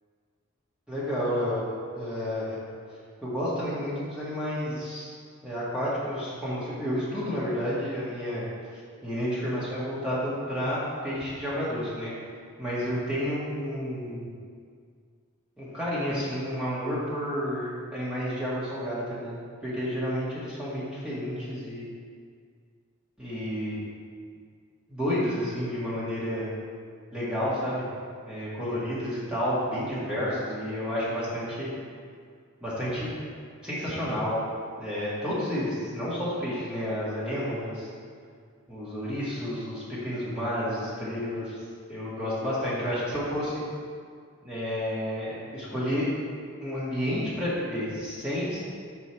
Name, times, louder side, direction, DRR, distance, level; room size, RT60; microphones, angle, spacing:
voice 1, 0.9-1.6 1.9-2.6 3.2-5.1 5.4-8.4 9.0-12.1 12.6-14.3 15.6-21.9 23.2-23.8 24.9-26.5 27.1-27.8 28.2-31.7 32.6-33.1 33.6-34.4 34.8-37.9 38.7-41.6 41.9-43.6 44.4-46.1 46.6-48.6, equal, 5° right, -10 dB, 1.5 m, -30 dB
5.1 x 4.5 x 4.5 m, 2.1 s
head